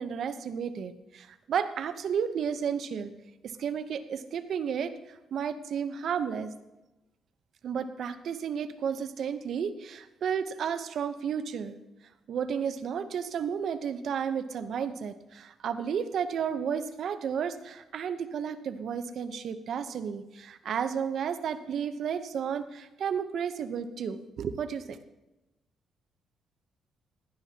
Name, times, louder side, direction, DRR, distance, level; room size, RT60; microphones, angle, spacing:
voice 1, 0.0-3.1 3.6-6.5 7.6-11.8 12.3-25.0, right 7 dB, 65° right, 10 dB, 0.8 m, -32 dB
16.0 x 11.0 x 2.8 m, 0.99 s
cardioid pair, 90°, 0 cm